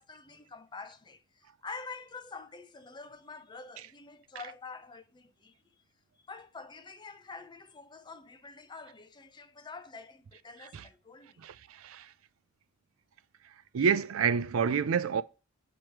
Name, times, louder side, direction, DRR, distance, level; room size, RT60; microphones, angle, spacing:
voice 1, 0.0-5.5 6.3-11.4, left 4 dB, 20° left, 0.5 m, -47 dB
voice 2, 11.4-12.1 13.7-15.2, right 6 dB, 75° right, 0.4 m, -28 dB
8.1 x 3.0 x 4.4 m
head